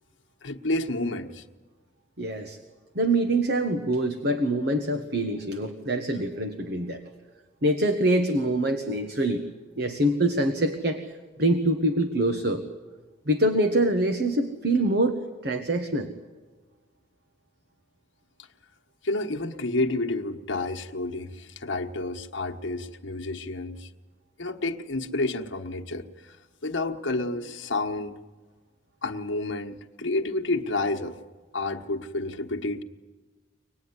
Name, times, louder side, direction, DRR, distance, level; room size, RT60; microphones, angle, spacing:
voice 1, 0.4-1.4 19.0-23.9 24.4-26.3 26.6-28.1 29.0-31.2 31.5-32.8, left 2 dB, 80° left, 2 dB, 1.3 m, -30 dB
voice 2, 2.2-2.6 2.9-7.0 7.6-9.4 9.8-11.0 11.4-12.6 13.3-16.1, right 1 dB, 55° right, 6 dB, 1.3 m, -25 dB
24.5 x 20.0 x 9.7 m, 1.4 s
head